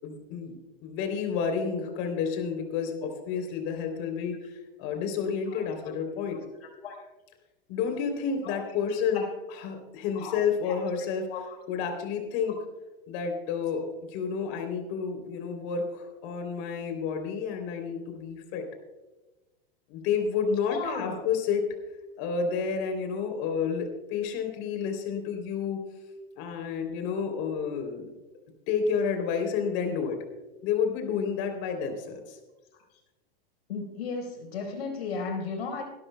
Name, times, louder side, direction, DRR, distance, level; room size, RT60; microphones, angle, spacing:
voice 1, 0.0-4.3 4.8-6.4 7.7-11.3 11.7-12.6 13.1-18.7 19.9-21.6 22.2-25.8 26.4-28.1 28.7-30.2 30.6-32.4, left 6 dB, 50° left, 4 dB, 3.3 m, -30 dB
voice 2, 6.6-7.0 8.4-8.5 9.1-9.3 10.1-10.3 10.6-10.8 11.3-11.4 20.7-21.2 33.7-35.8, left 4 dB, 80° left, 3 dB, 4.2 m, -35 dB
23.5 x 12.5 x 2.2 m, 1.1 s
hypercardioid pair, 130°, 30 cm